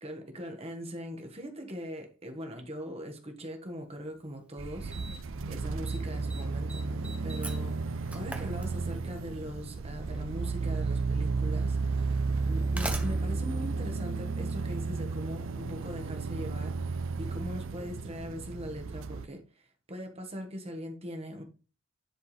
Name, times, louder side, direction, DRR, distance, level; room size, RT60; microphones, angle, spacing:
voice 1, 0.0-21.4, equal, 30° right, 1.4 m, -41 dB
Slam, 4.1-4.2 4.9-5.4 5.6-6.0 6.3-9.2 10.3-10.4 11.3-11.4 12.4-14.7, right 2 dB, 5° right, 0.8 m, -41 dB
sound 1, 4.6-19.3, right 4 dB, 65° right, 0.5 m, -33 dB
10.5 x 4.6 x 3.3 m
head